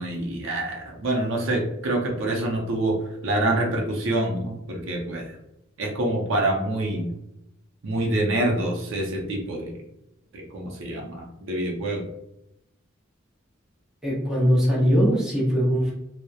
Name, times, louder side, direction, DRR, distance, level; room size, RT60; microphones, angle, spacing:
voice 1, 0.0-3.0 3.2-5.3 5.8-7.2 7.8-9.7 10.3-12.0, right 1 dB, 65° right, 0 dB, 0.5 m, -26 dB
voice 2, 14.0-15.9, equal, 5° right, -5 dB, 0.6 m, -21 dB
2.7 x 2.0 x 2.3 m, 0.85 s
head